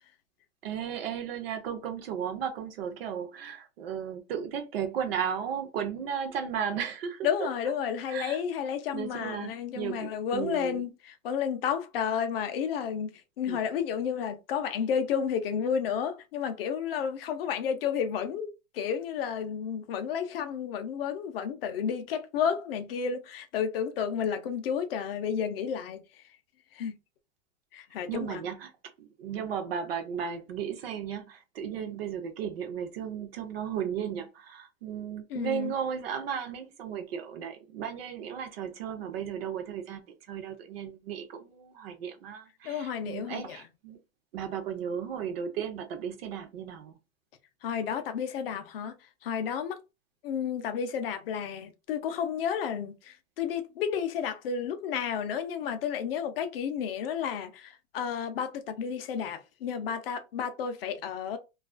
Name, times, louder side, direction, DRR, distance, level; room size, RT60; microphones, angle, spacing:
voice 1, 0.6-7.5 8.1-8.4 8.9-10.8 13.5-13.6 28.1-28.7 29.0-44.0 44.3-46.9, right 8 dB, 50° right, 0.4 m, -35 dB
voice 2, 7.2-26.0 26.7-27.0 27.7-28.4 35.3-35.7 42.6-43.6 47.6-48.9 49.2-49.8 50.2-61.4, left 7 dB, 50° left, 0.4 m, -31 dB
2.3 x 2.3 x 2.3 m
supercardioid pair, 155°, 39 cm